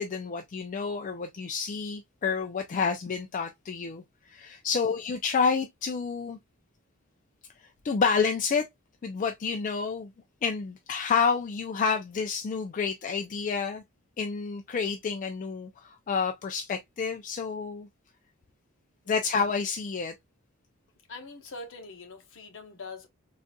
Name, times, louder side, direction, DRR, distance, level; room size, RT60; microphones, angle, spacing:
voice 1, 0.0-6.4 7.8-8.7 9.0-10.1 10.4-13.8 14.2-17.9 19.1-20.1, left 5 dB, 35° left, 0.4 m, -29 dB
voice 2, 21.1-23.1, left 3 dB, 65° left, 1.0 m, -44 dB
3.9 x 2.5 x 2.2 m
head